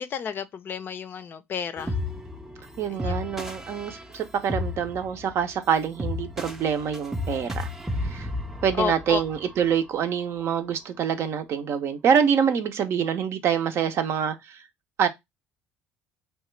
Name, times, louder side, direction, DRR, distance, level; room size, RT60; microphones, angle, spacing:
voice 1, 0.0-1.9 2.9-3.2 8.8-9.2, left 7 dB, 45° left, 0.5 m, -31 dB
sound 1, 1.8-9.9, left 2 dB, 10° right, 0.6 m, -33 dB
voice 2, 2.8-7.7 8.0-8.3 8.6-14.6 15.0-15.1, right 7 dB, 55° right, 0.5 m, -25 dB
2.9 x 2.2 x 3.1 m
supercardioid pair, 80°, 5 cm